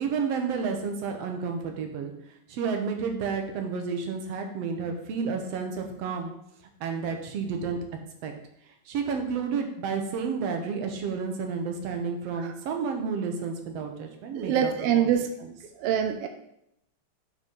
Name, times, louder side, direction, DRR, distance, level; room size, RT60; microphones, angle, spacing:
voice 1, 0.0-2.1 2.5-6.3 6.8-7.8 8.2-8.3 8.9-14.7 15.0-15.1, right 5 dB, 65° right, 4 dB, 1.8 m, -31 dB
voice 2, 14.3-15.3 15.8-16.3, right 9 dB, 85° right, 6 dB, 1.3 m, -25 dB
6.0 x 5.4 x 5.4 m, 0.78 s
omnidirectional pair, 3.5 m